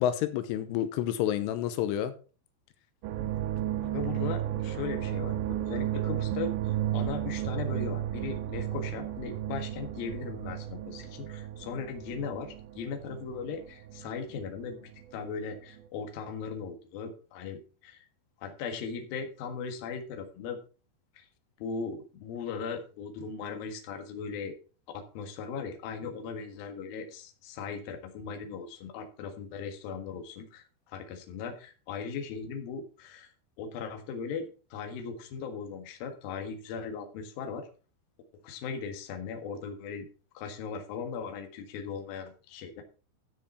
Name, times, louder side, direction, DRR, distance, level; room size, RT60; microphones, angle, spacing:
voice 1, 0.0-2.1, left 11 dB, 85° left, 3.4 m, -29 dB
sound 1, 3.0-15.2 15.4-15.9, right 12 dB, 85° right, 3.1 m, -34 dB
voice 2, 3.8-18.1 18.4-20.6 21.1-21.3 21.6-24.5 24.9-37.7 38.4-40.1 40.3-42.8, left 5 dB, 60° left, 2.9 m, -38 dB
13.0 x 6.9 x 4.3 m
omnidirectional pair, 5.7 m